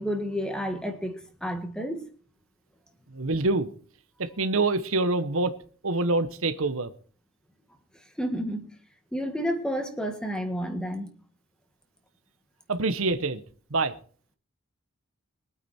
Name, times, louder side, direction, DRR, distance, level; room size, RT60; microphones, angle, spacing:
voice 1, 0.0-2.1 8.2-8.6 9.1-11.1, equal, 5° left, 5 dB, 1.8 m, -30 dB
voice 2, 3.1-3.7 4.2-5.6 5.8-6.9 12.7-13.4 13.7-13.9, right 3 dB, 75° right, 11 dB, 1.1 m, -26 dB
22.5 x 8.9 x 4.4 m, 0.43 s
head